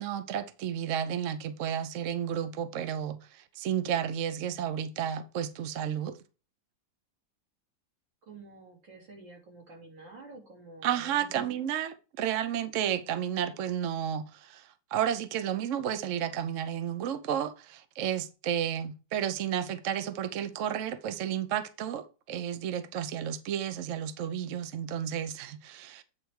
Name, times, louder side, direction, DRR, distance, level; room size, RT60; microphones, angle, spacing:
voice 1, 0.0-6.2 10.8-26.0, right 9 dB, 60° right, 0.8 m, -32 dB
voice 2, 8.2-11.6, right 3 dB, 80° right, 3.6 m, -49 dB
8.9 x 3.4 x 6.3 m
omnidirectional pair, 2.0 m